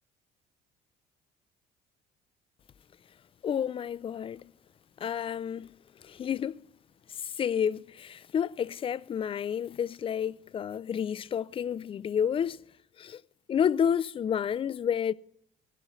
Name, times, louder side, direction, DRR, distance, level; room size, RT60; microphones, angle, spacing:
voice 1, 3.4-4.5 5.0-5.7 6.0-6.6 7.2-12.6 13.0-13.2 13.5-15.1, left 8 dB, 30° left, 0.4 m, -30 dB
17.0 x 12.0 x 3.1 m
cardioid pair, 110°, 17 cm